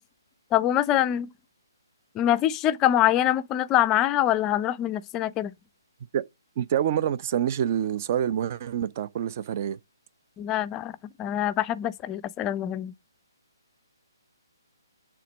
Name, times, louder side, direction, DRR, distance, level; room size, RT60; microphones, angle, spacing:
voice 1, 0.5-1.3 2.1-5.5 10.4-12.9, left 12 dB, 20° left, 0.4 m, -24 dB
voice 2, 6.6-9.8, right 9 dB, 35° right, 0.5 m, -26 dB
8.4 x 3.6 x 6.2 m
figure-of-eight pair, 135°, 2 cm